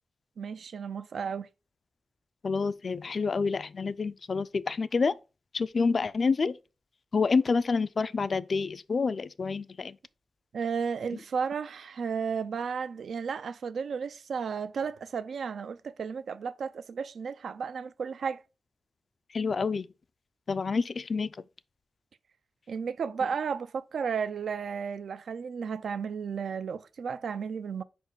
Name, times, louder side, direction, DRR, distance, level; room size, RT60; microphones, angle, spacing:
voice 1, 0.4-1.5 10.5-18.4 22.7-27.8, right 6 dB, 75° right, 0.4 m, -33 dB
voice 2, 2.4-5.1 5.5-6.6 7.1-10.0 11.1-11.2 19.3-19.9 20.5-21.4, left 4 dB, 45° left, 0.3 m, -28 dB
5.1 x 4.4 x 4.7 m
wide cardioid pair, 125°, 0 cm